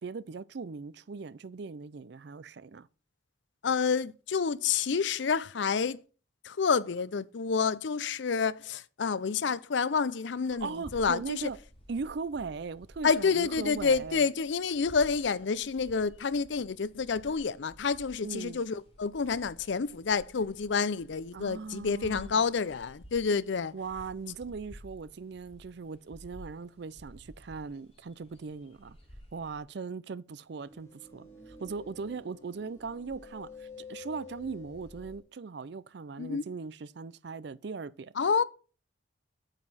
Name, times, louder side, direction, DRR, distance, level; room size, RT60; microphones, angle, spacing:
voice 1, 0.0-2.9 10.6-11.6 11.9-14.3 18.2-18.6 21.3-22.4 23.7-29.0 29.3-38.1, right 4 dB, 55° right, 0.4 m, -39 dB
voice 2, 3.6-6.0 6.4-11.5 13.0-23.7 36.2-36.4 38.2-38.4, left 5 dB, 65° left, 0.5 m, -29 dB
sound 1, 10.5-29.6, equal, 30° left, 3.0 m, -53 dB
sound 2, 30.5-35.2, left 3 dB, 15° left, 2.3 m, -49 dB
8.9 x 7.5 x 4.1 m
head